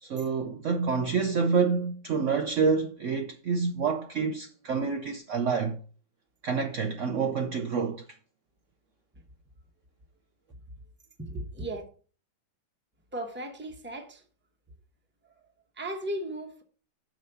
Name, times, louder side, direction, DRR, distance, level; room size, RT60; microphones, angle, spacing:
voice 1, 0.0-5.8 6.4-8.0, right 5 dB, 75° right, 0.7 m, -27 dB
voice 2, 11.2-11.9 13.1-14.2 15.2-16.6, right 1 dB, 10° right, 0.7 m, -36 dB
6.3 x 4.9 x 6.8 m
omnidirectional pair, 2.1 m